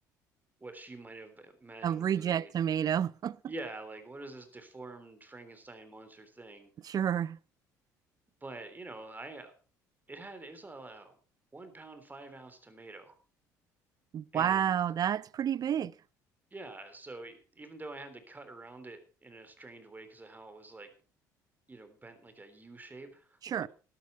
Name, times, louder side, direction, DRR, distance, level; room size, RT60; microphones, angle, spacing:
voice 1, 0.6-2.5 3.4-6.7 8.4-9.5 10.1-11.2 11.5-13.1 14.3-14.8 16.5-20.9 21.7-23.4, right 2 dB, 20° right, 3.3 m, -47 dB
voice 2, 1.8-3.4 6.8-7.4 14.1-15.9 23.4-23.7, right 9 dB, 45° right, 0.5 m, -30 dB
12.5 x 12.0 x 4.5 m
hypercardioid pair, 60°, 9 cm